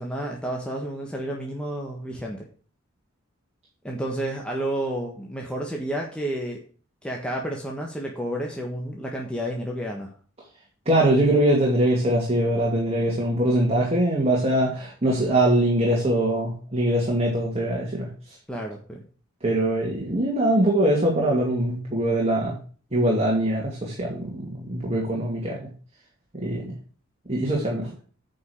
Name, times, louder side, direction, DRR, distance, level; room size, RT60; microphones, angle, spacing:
voice 1, 0.0-2.5 3.8-6.6 7.0-10.1 18.5-19.0 25.0-25.3, right 1 dB, 5° left, -1 dB, 1.4 m, -31 dB
voice 2, 10.9-18.1 19.4-22.6 22.9-25.6 26.3-26.7 27.3-27.9, right 1 dB, 30° right, -2 dB, 2.5 m, -22 dB
9.3 x 5.4 x 6.4 m, 0.41 s
head